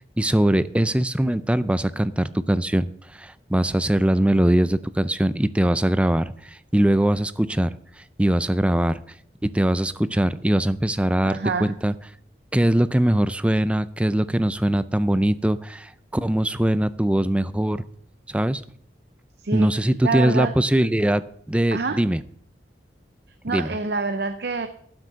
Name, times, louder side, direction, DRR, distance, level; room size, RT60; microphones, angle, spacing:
voice 1, 0.2-7.7 8.2-9.0 9.4-11.9 12.5-17.8 18.3-18.6 19.5-22.2 23.5-23.7, right 1 dB, 5° right, 14 dB, 0.4 m, -21 dB
voice 2, 11.2-11.7 19.4-20.6 21.7-22.0 23.4-24.7, right 4 dB, 65° right, 9 dB, 0.6 m, -27 dB
12.0 x 6.3 x 6.8 m, 0.64 s
head